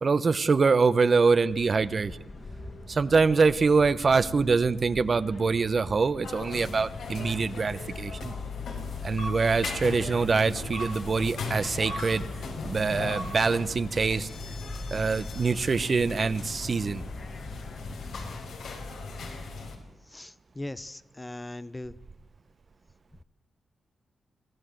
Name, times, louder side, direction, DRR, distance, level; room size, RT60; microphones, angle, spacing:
voice 1, 0.0-2.2 2.9-8.3 9.0-12.3 12.6-14.3 14.9-17.0, right 4 dB, 45° right, 14 dB, 1.0 m, -24 dB
sound 1, 1.5-18.4, left 2 dB, 45° left, 2.6 m, -44 dB
sound 2, 6.2-19.7, left 3 dB, 85° left, 4.8 m, -37 dB
voice 2, 20.1-22.0, left 1 dB, 15° left, 15 dB, 0.8 m, -39 dB
24.5 x 15.0 x 7.8 m, 1.1 s
cardioid pair, 85°, 0 cm